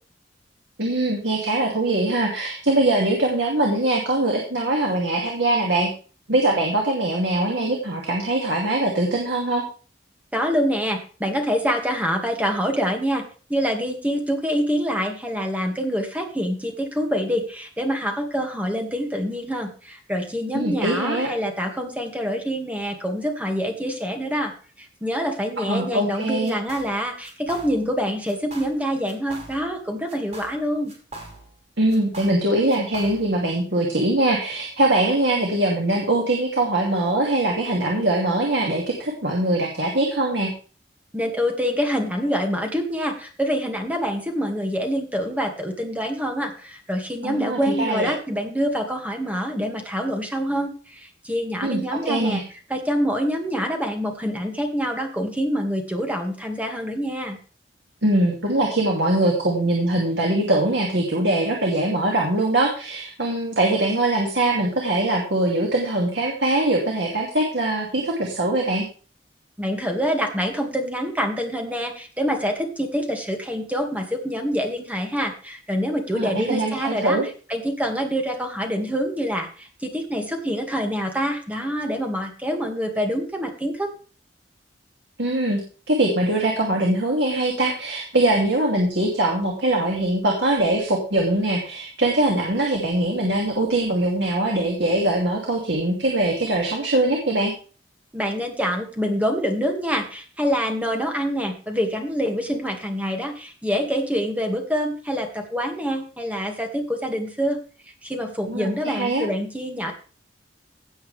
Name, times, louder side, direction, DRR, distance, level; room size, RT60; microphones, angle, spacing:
voice 1, 0.8-5.9 6.3-9.6 20.5-21.3 25.6-26.5 31.8-40.5 47.2-48.1 51.6-52.4 58.0-68.9 76.1-77.3 85.2-85.6 85.9-97.5 108.5-109.3, right 1 dB, 80° right, -1 dB, 2.5 m, -22 dB
voice 2, 10.3-24.5 24.8-30.9 41.1-52.4 52.7-57.4 69.6-77.2 77.5-83.9 98.1-107.6 108.0-109.9, equal, 10° right, 3 dB, 2.2 m, -26 dB
sound 1, 26.4-27.0 27.2-28.0 28.3-28.8 29.0-29.8 30.1-31.6 31.9-33.4, right 2 dB, 40° right, 5.3 m, -41 dB
17.0 x 7.7 x 3.5 m, 0.38 s
head